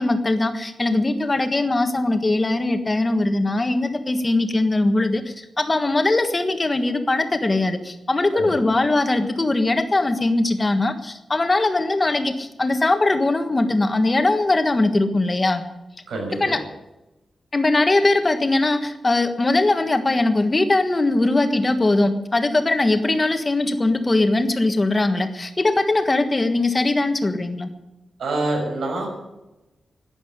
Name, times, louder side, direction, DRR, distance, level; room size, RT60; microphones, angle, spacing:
voice 1, 0.0-15.6 16.4-16.6 17.5-27.7, left 2 dB, 20° left, 7 dB, 1.5 m, -20 dB
voice 2, 16.1-16.5 28.2-29.1, right 2 dB, 90° right, 1 dB, 6.9 m, -26 dB
12.5 x 11.0 x 10.0 m, 0.98 s
wide cardioid pair, 155°, 0 cm